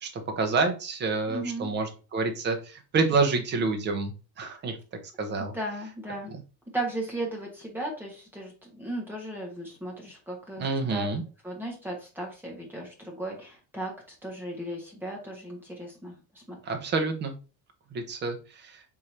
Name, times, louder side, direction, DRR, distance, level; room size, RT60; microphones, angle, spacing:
voice 1, 0.0-4.8 5.2-5.5 6.3-6.4 10.6-11.2 16.6-17.3 17.9-18.7, right 3 dB, 25° right, 5 dB, 0.7 m, -28 dB
voice 2, 1.3-1.7 5.4-6.3 6.7-11.1 11.4-13.9 14.2-16.6, right 1 dB, 5° right, -2 dB, 1.2 m, -36 dB
3.7 x 3.2 x 4.1 m, 0.34 s
cardioid pair, 170°, 42 cm